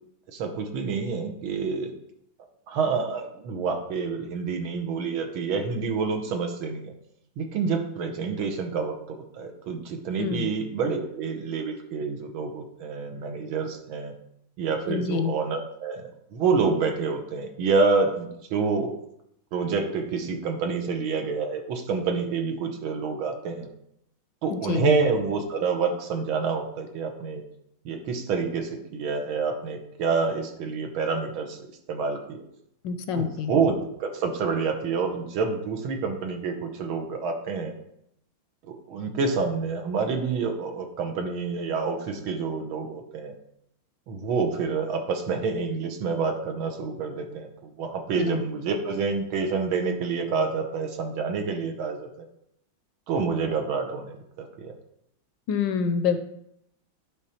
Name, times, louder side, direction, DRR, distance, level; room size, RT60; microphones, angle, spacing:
voice 1, 0.3-1.9 2.7-6.9 7.4-14.1 14.6-19.0 19.5-23.7 24.4-27.4 27.8-31.6 31.9-32.4 33.1-37.7 38.7-43.4 44.1-52.3 53.1-54.7, right 4 dB, 85° right, 4 dB, 1.8 m, -28 dB
voice 2, 10.2-10.5 14.9-15.3 24.5-24.9 32.8-33.5 48.2-48.4 55.5-56.2, left 6 dB, 75° left, 9 dB, 1.2 m, -27 dB
10.5 x 3.6 x 4.3 m, 0.76 s
omnidirectional pair, 2.2 m